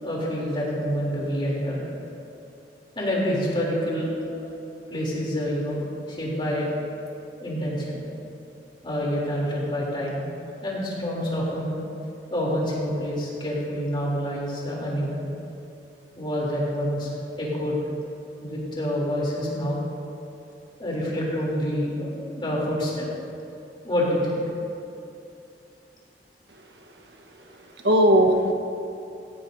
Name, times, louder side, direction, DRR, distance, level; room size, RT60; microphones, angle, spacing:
voice 1, 0.0-1.8 2.9-4.5 4.9-5.8 6.1-6.7 7.4-8.0 8.8-10.2 10.6-11.8 12.3-15.3 16.1-17.1 17.4-17.8 18.4-19.8 20.8-23.1 23.8-24.4, equal, 30° left, -4 dB, 3.3 m, -27 dB
voice 2, 26.5-28.5, equal, 80° right, 3 dB, 1.3 m, -22 dB
16.5 x 16.0 x 2.8 m, 2.6 s
head